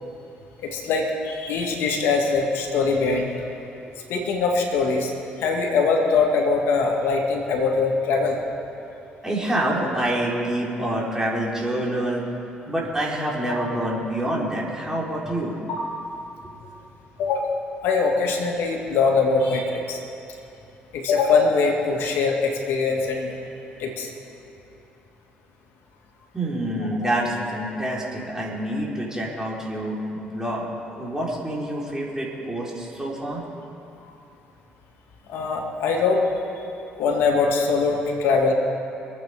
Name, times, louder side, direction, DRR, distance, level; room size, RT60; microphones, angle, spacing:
voice 1, 0.6-3.3 4.1-5.1 5.4-8.4 13.5-13.7 15.8-15.9 17.2-20.0 20.9-23.4 23.8-24.1 27.0-27.1 35.3-36.2 37.0-38.5, left 4 dB, 75° left, 1 dB, 2.3 m, -22 dB
voice 2, 9.2-12.2 12.7-15.6 26.3-30.7 31.0-33.4, right 1 dB, 15° right, -5 dB, 4.3 m, -27 dB
25.0 x 8.6 x 5.1 m, 2.8 s
supercardioid pair, 60°, 4 cm